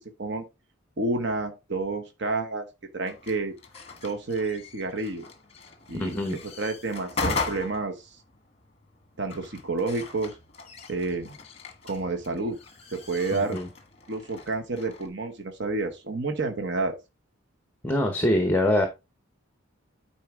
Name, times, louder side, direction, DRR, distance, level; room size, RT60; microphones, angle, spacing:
voice 1, 1.0-2.7 2.9-3.5 4.0-5.2 5.9-7.9 9.2-10.3 10.9-11.4 11.8-12.6 12.9-13.6 14.1-17.0, right 3 dB, 55° right, 1.0 m, -29 dB
sound 1, 3.1-15.1, left 4 dB, 30° left, 1.2 m, -38 dB
voice 2, 6.0-6.4 13.3-13.7 17.8-18.9, left 1 dB, 10° left, 0.8 m, -24 dB
9.3 x 4.3 x 3.6 m
head